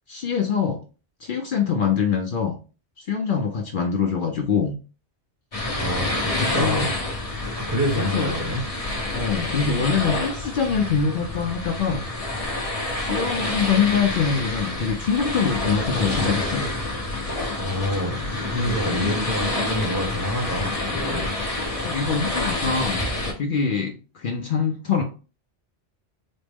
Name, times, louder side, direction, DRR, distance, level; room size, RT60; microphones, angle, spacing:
voice 1, 0.1-0.8 1.2-2.6 3.0-4.7 6.3-6.9 7.9-8.3 9.1-12.0 13.0-16.7 21.8-23.1 23.4-25.0, left 6 dB, 60° left, 2 dB, 0.7 m, -24 dB
sound 1, 5.5-23.3, left 2 dB, 35° left, 0.9 m, -28 dB
voice 2, 5.7-7.0 7.6-8.6 17.6-18.2 18.5-21.3, equal, 15° right, -2 dB, 1.0 m, -27 dB
4.2 x 2.0 x 3.4 m, 0.35 s
omnidirectional pair, 1.1 m